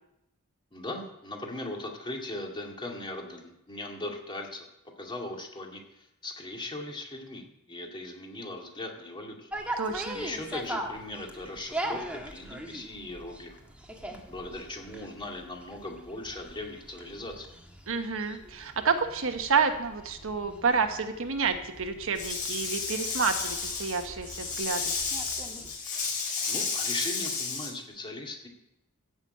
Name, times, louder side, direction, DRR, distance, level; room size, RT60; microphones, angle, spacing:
voice 1, 0.7-4.7 5.0-9.5 10.1-13.6 14.3-17.5 26.5-28.5, left 2 dB, 20° left, 1 dB, 2.3 m, -39 dB
sound 1, 9.5-25.8, right 1 dB, 5° right, 1.5 m, -41 dB
voice 2, 9.8-10.2 17.9-24.9, right 5 dB, 65° right, 6 dB, 1.2 m, -29 dB
Rattle / Rattle (instrument), 22.1-27.7, left 5 dB, 35° left, 6.8 m, -32 dB
15.0 x 6.3 x 8.6 m, 0.87 s
head